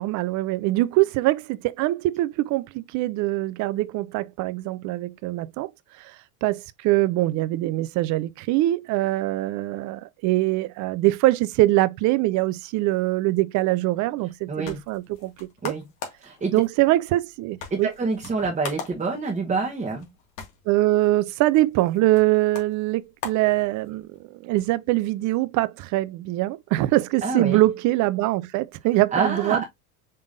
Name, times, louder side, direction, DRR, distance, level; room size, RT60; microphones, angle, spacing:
voice 1, 0.0-5.7 6.0-6.1 6.4-15.8 16.5-17.9 20.7-24.1 24.4-29.6, right 17 dB, 45° right, 0.5 m, -23 dB
sound 1, 14.2-24.2, left 5 dB, 65° left, 2.1 m, -42 dB
voice 2, 14.5-14.8 15.6-15.8 16.2-16.5 17.7-20.1 27.2-27.6 29.1-29.6, right 4 dB, 20° right, 1.2 m, -27 dB
5.3 x 3.5 x 2.6 m
hypercardioid pair, 85°, 44 cm